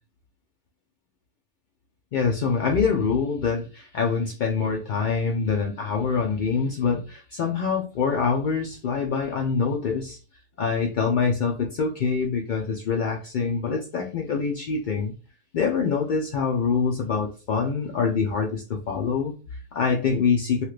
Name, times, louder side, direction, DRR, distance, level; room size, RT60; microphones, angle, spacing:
voice 1, 2.1-10.2 10.6-15.1 15.5-20.6, left 5 dB, 70° left, 0 dB, 0.4 m, -25 dB
2.9 x 2.4 x 3.1 m, 0.35 s
omnidirectional pair, 1.3 m